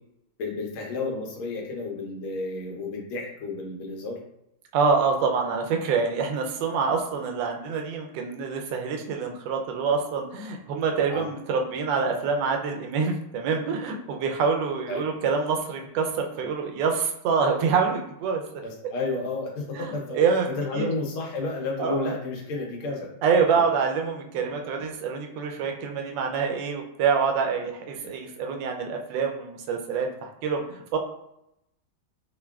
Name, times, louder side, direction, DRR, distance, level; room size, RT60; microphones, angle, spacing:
voice 1, 0.4-4.2 11.1-11.2 14.9-15.0 18.6-20.2 20.5-23.1 23.5-23.7 24.3-24.5 24.8-24.9 28.0-28.1, left 3 dB, 85° left, -1 dB, 1.7 m, -31 dB
voice 2, 4.7-18.4 19.7-20.5 20.7-20.9 21.8-22.1 23.2-31.0, right 5 dB, 75° right, 3 dB, 1.2 m, -26 dB
5.5 x 2.2 x 2.3 m, 0.79 s
omnidirectional pair, 2.3 m